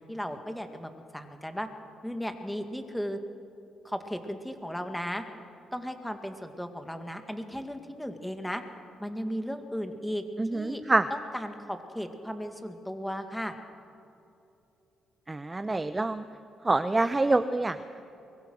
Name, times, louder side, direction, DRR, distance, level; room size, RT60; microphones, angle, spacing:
voice 1, 0.0-1.7 2.0-3.2 3.8-5.2 5.7-8.6 9.0-10.3 10.5-10.8 11.1-13.5, equal, 5° left, 6 dB, 2.0 m, -35 dB
voice 2, 10.4-11.1 15.3-16.3 16.6-18.0, right 2 dB, 20° right, 11 dB, 0.7 m, -26 dB
23.5 x 21.5 x 6.3 m, 2.8 s
cardioid pair, 90°, 0 cm